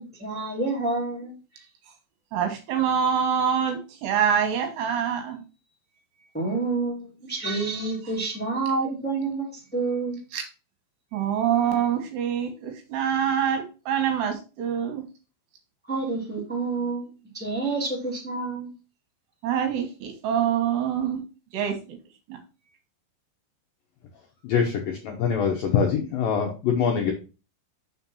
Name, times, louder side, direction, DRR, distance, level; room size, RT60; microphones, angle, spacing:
voice 1, 0.2-1.3 6.3-10.2 15.9-18.7, right 3 dB, 5° left, -4 dB, 1.4 m, -28 dB
voice 2, 2.3-5.4 10.3-10.4 11.1-15.0 19.4-21.2 21.5-22.0 22.3-22.4, right 8 dB, 70° right, 4 dB, 3.2 m, -25 dB
voice 3, 24.4-27.1, left 6 dB, 75° left, 1 dB, 2.1 m, -24 dB
6.3 x 4.5 x 5.5 m, 0.32 s
omnidirectional pair, 5.4 m